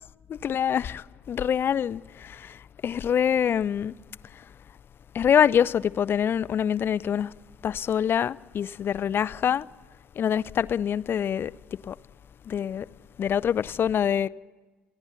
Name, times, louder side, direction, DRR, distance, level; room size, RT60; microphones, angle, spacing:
voice 1, 0.4-3.9 5.1-7.3 7.6-9.7 10.2-11.5 11.9-12.0 12.5-12.9 13.2-14.3, left 8 dB, 40° left, 0.7 m, -25 dB
29.0 x 19.0 x 7.1 m
figure-of-eight pair, 50°, 6 cm